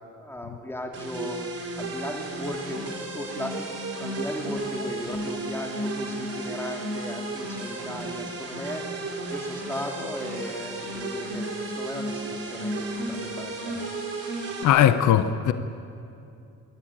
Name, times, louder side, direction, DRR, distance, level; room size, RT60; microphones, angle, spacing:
voice 1, 0.0-3.7 4.0-14.4, left 1 dB, 10° left, 3.1 m, -37 dB
sound 1, 0.9-14.6, right 2 dB, 50° right, 4.6 m, -33 dB
voice 2, 14.6-15.5, left 10 dB, 80° left, 0.9 m, -19 dB
26.5 x 11.0 x 9.1 m
cardioid pair, 90°, 30 cm